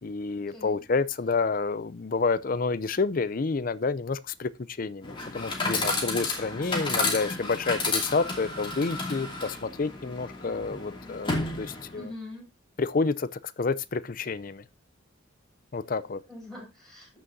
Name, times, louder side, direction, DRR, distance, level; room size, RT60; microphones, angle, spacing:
voice 1, 0.0-12.1 12.8-14.6 15.7-16.2, left 4 dB, 45° left, 0.5 m, -29 dB
Chatter / Coin (dropping), 5.0-12.1, left 3 dB, 25° left, 2.6 m, -31 dB
voice 2, 11.9-12.5 16.3-17.1, left 2 dB, ahead, 6.1 m, -43 dB
15.0 x 6.4 x 2.7 m
head